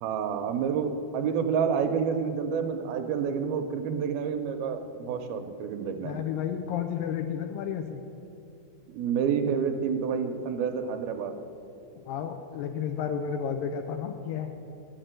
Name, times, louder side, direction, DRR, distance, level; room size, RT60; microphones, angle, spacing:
voice 1, 0.0-6.2 8.9-11.3, right 6 dB, 80° right, 6 dB, 2.4 m, -29 dB
voice 2, 6.0-8.0 12.1-14.5, left 8 dB, 80° left, 5 dB, 2.1 m, -32 dB
11.5 x 6.6 x 8.9 m, 2.6 s
omnidirectional pair, 4.5 m